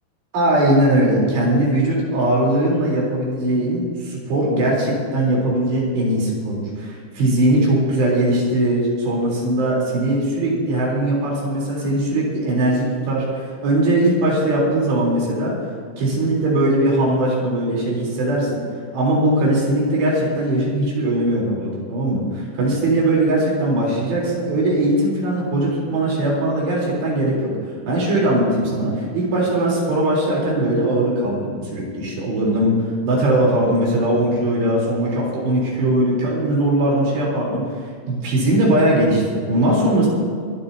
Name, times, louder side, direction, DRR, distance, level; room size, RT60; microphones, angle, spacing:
voice 1, 0.3-15.5 16.0-18.6 18.9-27.5 27.9-37.6 38.1-40.1, right 1 dB, 80° right, -4 dB, 6.1 m, -20 dB
25.5 x 12.0 x 2.9 m, 2.2 s
omnidirectional pair, 4.8 m